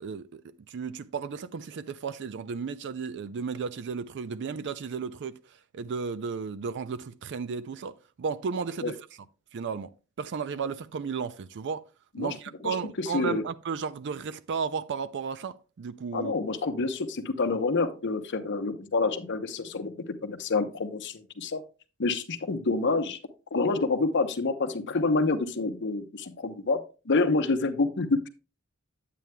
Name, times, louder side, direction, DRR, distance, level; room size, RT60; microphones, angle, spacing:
voice 1, 0.0-0.4 0.7-5.4 5.7-9.0 9.5-9.9 10.2-11.8 12.2-16.3, right 5 dB, 55° right, 0.4 m, -34 dB
voice 2, 12.6-13.4 16.1-21.6 22.0-23.2 23.5-28.3, left 3 dB, 55° left, 0.8 m, -28 dB
9.1 x 8.4 x 2.2 m
head